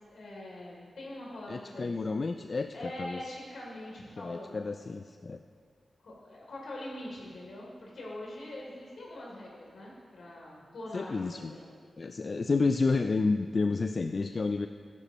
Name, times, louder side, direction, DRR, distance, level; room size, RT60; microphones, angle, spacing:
voice 1, 0.1-2.2 2.7-4.7 6.0-11.7, left 1 dB, 80° left, -4 dB, 3.1 m, -43 dB
voice 2, 1.5-3.2 4.2-5.4 10.9-11.5 12.0-14.7, left 3 dB, 50° left, 7 dB, 0.3 m, -30 dB
13.5 x 10.5 x 3.1 m, 2.2 s
cardioid pair, 65°, 0 cm